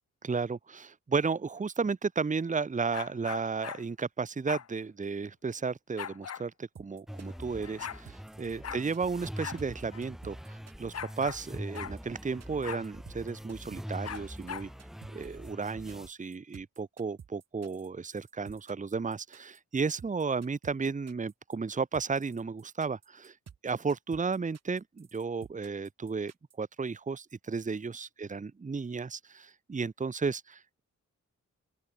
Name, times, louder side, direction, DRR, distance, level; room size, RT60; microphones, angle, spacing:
voice 1, 0.2-14.7 15.1-23.3 23.6-26.3 26.6-30.8, right 4 dB, 25° right, 1.0 m, -33 dB
sound 1, 2.9-3.8 4.5-4.7 6.0-6.5 7.3-7.4 7.6-8.0 8.6-8.8 9.4-9.6 9.9-10.0 10.9-11.4 11.7-12.0 12.6-12.9 14.0-14.7, left 8 dB, 55° left, 0.9 m, -39 dB
sound 2, 6.7-26.5, right 7 dB, 55° right, 1.7 m, -53 dB
sound 3, 7.1-16.1, equal, ahead, 0.5 m, -44 dB
open air
wide cardioid pair, 165°, 30 cm